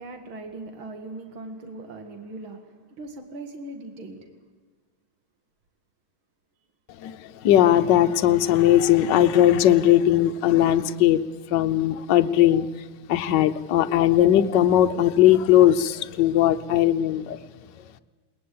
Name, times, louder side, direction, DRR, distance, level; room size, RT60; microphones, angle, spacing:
voice 1, 0.0-4.3, right 2 dB, 80° right, 5 dB, 2.8 m, -39 dB
voice 2, 7.0-11.2 11.5-12.7 13.1-17.4, left 12 dB, 65° left, 9 dB, 1.4 m, -19 dB
21.0 x 20.5 x 8.5 m, 1.4 s
omnidirectional pair, 2.2 m